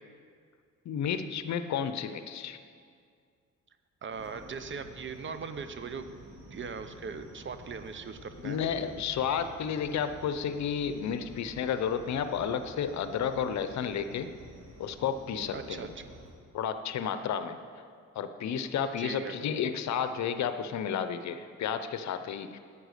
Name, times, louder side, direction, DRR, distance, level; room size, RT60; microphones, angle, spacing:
voice 1, 0.8-2.6 8.4-14.3 14.8-15.9 16.5-17.6 18.1-22.6, left 7 dB, 65° left, 10 dB, 0.8 m, -32 dB
voice 2, 4.0-6.0 6.5-8.6 15.5-16.1 19.0-19.4, right 5 dB, 40° right, 9 dB, 0.8 m, -39 dB
sound 1, 4.1-16.3, right 1 dB, 65° right, 2.8 m, -50 dB
10.0 x 8.4 x 6.6 m, 2.2 s
cardioid pair, 90°, 30 cm